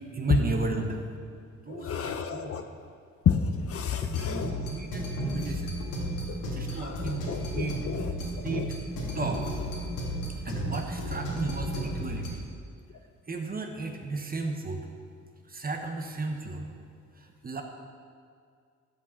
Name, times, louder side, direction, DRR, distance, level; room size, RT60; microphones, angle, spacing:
voice 1, 0.1-1.1 1.7-2.5 4.0-5.7 6.5-7.2 7.5-7.9 8.4-8.7 9.1-9.4 10.4-12.4 13.3-14.8 15.5-16.6 17.4-17.6, right 3 dB, 30° right, 3 dB, 1.2 m, -33 dB
voice 2, 1.7-2.6 3.3-4.5 6.8-8.1 8.5-8.7, left 7 dB, 50° left, 7 dB, 0.7 m, -30 dB
sound 1, 4.1-12.3, equal, 90° left, 2.0 m, -34 dB
13.0 x 6.3 x 4.1 m, 2.2 s
cardioid pair, 90°, 30 cm